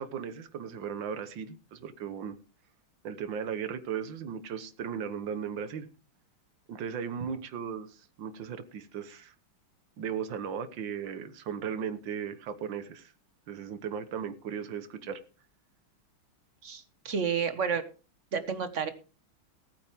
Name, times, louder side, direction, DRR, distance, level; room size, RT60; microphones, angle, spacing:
voice 1, 0.0-2.4 3.0-5.9 6.7-9.3 10.0-13.1 13.5-15.2, right 7 dB, 65° right, 10 dB, 1.9 m, -36 dB
voice 2, 16.6-17.8 18.3-18.9, right 6 dB, 40° right, 10 dB, 1.4 m, -30 dB
19.0 x 9.0 x 3.6 m, 0.35 s
omnidirectional pair, 2.3 m